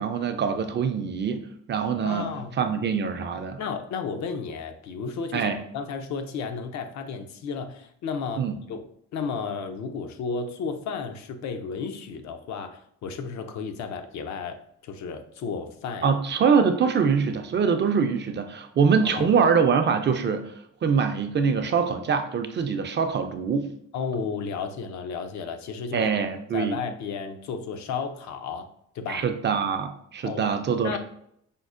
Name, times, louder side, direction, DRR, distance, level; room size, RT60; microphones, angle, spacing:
voice 1, 0.0-2.3 2.6-3.6 5.3-5.6 8.4-8.6 16.0-20.5 20.8-23.7 25.9-26.8 29.1-31.0, right 6 dB, 40° right, 7 dB, 0.4 m, -24 dB
voice 2, 2.0-2.6 3.6-16.2 19.1-19.4 23.9-26.1 26.5-28.7 28.9-29.3 30.2-30.5 30.8-31.0, left 5 dB, 65° left, 7 dB, 0.5 m, -33 dB
5.2 x 2.0 x 2.4 m, 0.70 s
cardioid pair, 90°, 30 cm